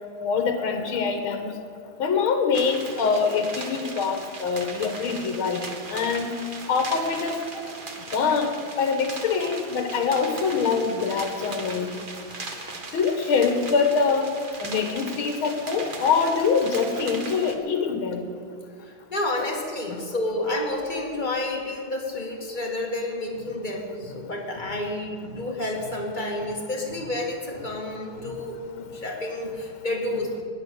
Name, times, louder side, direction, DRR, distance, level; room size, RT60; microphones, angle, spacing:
voice 1, 0.2-1.5 2.0-6.3 6.7-7.7 8.1-11.9 12.9-14.2 14.6-18.2 19.9-20.0, left 5 dB, 75° left, 5 dB, 2.1 m, -24 dB
sound 1, 2.5-17.5, right 3 dB, 30° right, 1.0 m, -38 dB
voice 2, 18.8-30.3, left 1 dB, 25° left, -1 dB, 2.0 m, -30 dB
20.0 x 8.5 x 6.9 m, 2.2 s
omnidirectional pair, 2.3 m